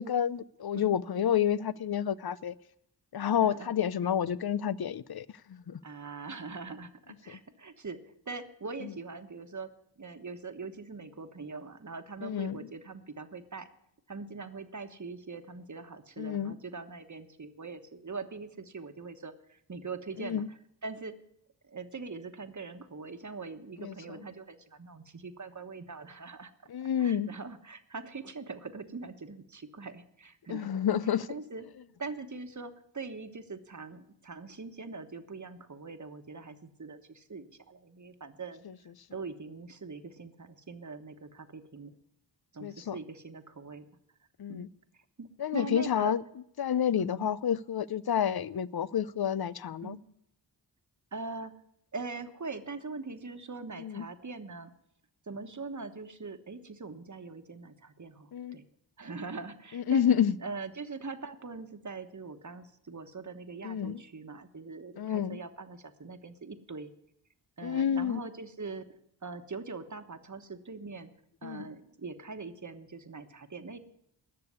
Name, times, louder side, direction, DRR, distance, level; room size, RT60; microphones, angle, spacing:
voice 1, 0.0-2.5 3.1-5.8 12.2-12.6 16.2-16.5 20.2-20.5 23.8-23.9 26.7-27.3 30.5-31.3 42.6-43.0 44.4-44.7 45.4-46.2 46.6-50.0 53.8-54.0 58.3-58.6 59.7-60.3 63.6-64.0 65.0-65.4 67.6-68.2 71.4-71.7, left 9 dB, 60° left, 0.6 m, -29 dB
voice 2, 0.7-1.0 3.2-3.8 5.8-9.7 10.0-13.7 14.1-21.1 21.6-26.5 27.0-30.7 31.3-31.6 32.0-38.7 39.1-41.9 42.5-43.9 44.5-44.7 44.9-46.1 46.9-47.3 49.8-50.0 51.1-51.5 51.9-54.7 55.3-58.6 59.0-60.0 60.4-66.9 67.6-68.9 69.2-71.1 71.4-73.8, right 4 dB, 40° right, 1.3 m, -42 dB
19.0 x 6.8 x 9.5 m
wide cardioid pair, 55°, 43 cm